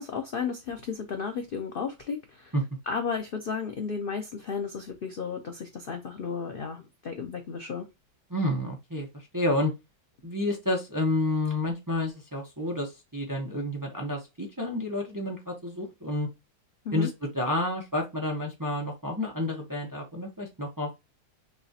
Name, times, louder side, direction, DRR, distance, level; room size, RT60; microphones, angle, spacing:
voice 1, 0.0-2.5 2.9-7.9 16.8-17.1, left 5 dB, 75° left, 0.5 m, -33 dB
voice 2, 8.3-9.7 10.2-16.3 16.9-20.9, left 1 dB, 20° right, 0.5 m, -30 dB
5.9 x 2.4 x 2.8 m
omnidirectional pair, 1.8 m